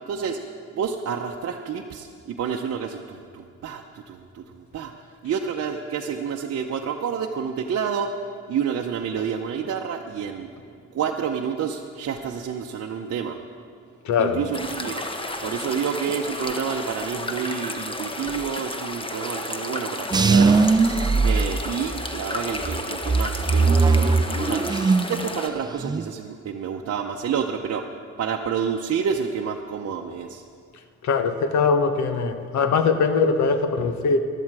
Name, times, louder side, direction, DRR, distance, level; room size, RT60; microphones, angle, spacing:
voice 1, 0.1-0.4 0.7-4.9 5.2-8.2 8.5-10.5 10.9-13.4 14.2-15.0 15.4-20.6 21.2-24.8 25.1-27.8 28.2-30.4, right 7 dB, 55° right, 1 dB, 0.8 m, -29 dB
voice 2, 14.0-14.5 31.0-34.2, left 5 dB, 65° left, 8 dB, 1.1 m, -21 dB
sound 1, 14.5-25.5, left 2 dB, 15° left, 1.0 m, -32 dB
sound 2, 20.1-22.2 22.6-25.2 25.5-26.1, right 4 dB, 15° right, 0.3 m, -20 dB
15.5 x 11.5 x 4.8 m, 2.2 s
cardioid pair, 90°, 30 cm